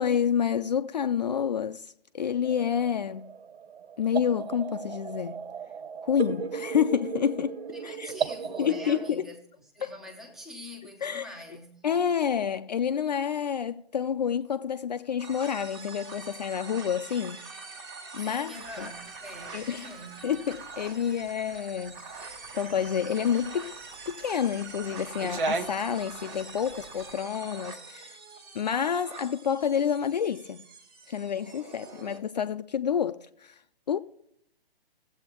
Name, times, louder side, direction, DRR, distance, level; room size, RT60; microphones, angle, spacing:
voice 1, 0.0-3.3 4.0-5.4 6.0-8.1 8.6-9.4 9.8-9.9 11.0-11.4 11.8-17.4 18.1-18.9 19.5-19.9 20.2-23.7 24.1-28.2 28.5-30.6 31.1-33.5 33.9-34.0, left 8 dB, 45° left, 0.4 m, -29 dB
sound 1, 2.4-9.1, right 7 dB, 90° right, 0.7 m, -36 dB
voice 2, 7.7-9.4 9.7-11.8 18.2-20.2, left 1 dB, ahead, 0.6 m, -44 dB
sound 2, 15.2-32.2, right 4 dB, 25° right, 1.4 m, -45 dB
sound 3, 18.5-27.1, right 3 dB, 55° right, 1.2 m, -40 dB
18.0 x 7.9 x 2.9 m
hypercardioid pair, 150°, 31 cm